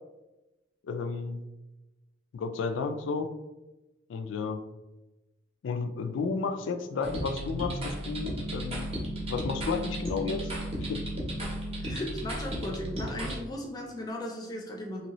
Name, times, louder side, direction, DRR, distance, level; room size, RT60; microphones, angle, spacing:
voice 1, 0.8-1.4 2.3-3.3 4.1-4.6 5.6-8.9 9.3-10.5 10.9-11.0, left 4 dB, 80° left, 8 dB, 0.3 m, -32 dB
sound 1, 7.0-13.4, right 1 dB, 30° right, 0.7 m, -34 dB
voice 2, 11.8-15.1, left 1 dB, 20° left, 0 dB, 0.5 m, -37 dB
2.9 x 2.7 x 3.0 m, 1.0 s
head